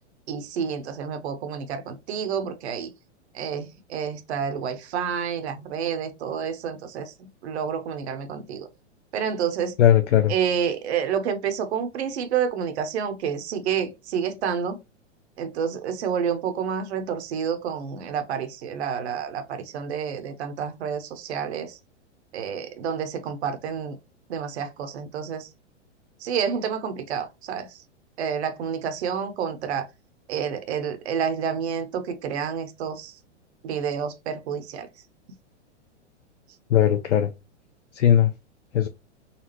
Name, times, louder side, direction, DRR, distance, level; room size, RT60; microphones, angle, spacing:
voice 1, 0.3-2.9 3.3-8.7 9.1-9.7 10.3-14.8 15.4-21.8 22.3-24.0 24.3-25.5 26.2-27.8 28.2-29.9 30.3-33.1 33.6-34.9, right 7 dB, 65° right, 0.9 m, -29 dB
voice 2, 9.8-10.3 36.7-37.3 37.9-38.3 38.7-38.9, left 10 dB, 75° left, 0.6 m, -18 dB
4.1 x 2.3 x 2.9 m
hypercardioid pair, 110°, 36 cm